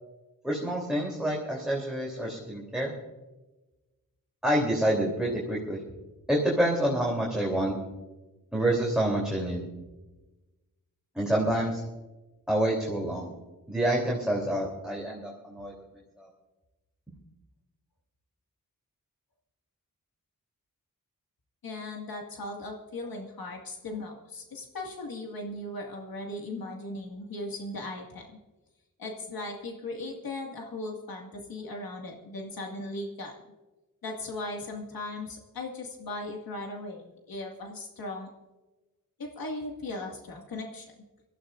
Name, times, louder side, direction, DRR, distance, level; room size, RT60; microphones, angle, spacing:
voice 1, 0.4-2.9 4.4-5.8 6.3-7.8 8.5-9.7 11.2-11.8 12.5-13.3 13.7-15.7 16.2-16.3 17.1-17.2, right 1 dB, ahead, -3 dB, 3.3 m, -27 dB
voice 2, 21.6-28.2 29.0-33.3 34.0-38.3 39.2-40.9, left 2 dB, 85° left, 0 dB, 2.2 m, -38 dB
24.5 x 14.0 x 2.6 m, 1.1 s
wide cardioid pair, 110°, 34 cm